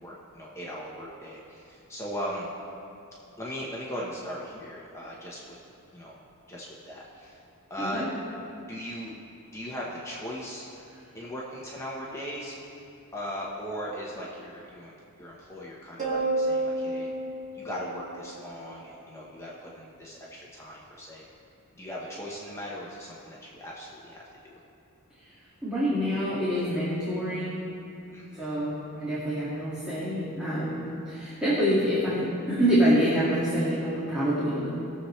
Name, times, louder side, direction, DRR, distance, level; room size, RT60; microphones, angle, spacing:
voice 1, 0.0-2.5 3.4-5.6 5.9-6.2 6.5-7.4 7.7-8.1 8.6-9.1 9.5-10.7 11.1-12.6 13.1-17.1 17.5-21.3 21.7-24.6 28.1-28.5, equal, 15° left, -5 dB, 1.1 m, -38 dB
sound 1, 16.0-18.6, right 2 dB, 35° right, 2.1 m, -30 dB
voice 2, 25.6-27.5 28.4-34.7, equal, 5° right, -11 dB, 2.1 m, -26 dB
19.5 x 7.2 x 3.3 m, 2.7 s
head